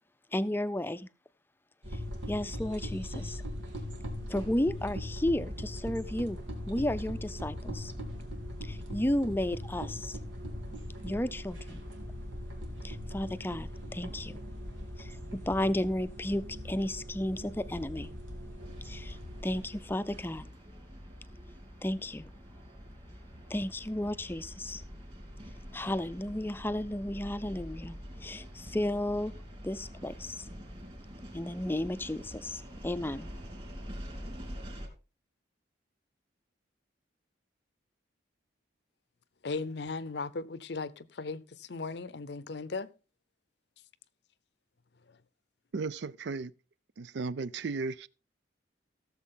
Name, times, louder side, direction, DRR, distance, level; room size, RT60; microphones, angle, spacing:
voice 1, 0.3-1.1 1.9-2.0 2.3-3.4 4.3-6.4 6.7-7.9 8.6-10.2 11.0-11.8 12.8-14.4 15.0-18.1 18.8-19.2 19.4-20.5 21.8-22.3 23.5-24.8 25.7-29.3 29.6-30.5 31.3-33.3, left 1 dB, 10° left, 0.5 m, -33 dB
sound 1, 1.8-20.4, equal, 85° right, 2.9 m, -40 dB
sound 2, 18.6-34.9, equal, 30° right, 3.3 m, -46 dB
voice 2, 39.4-42.9, left 3 dB, 60° left, 0.6 m, -37 dB
voice 3, 45.7-46.5 47.0-48.1, right 4 dB, 65° right, 0.4 m, -35 dB
16.5 x 7.2 x 3.8 m
head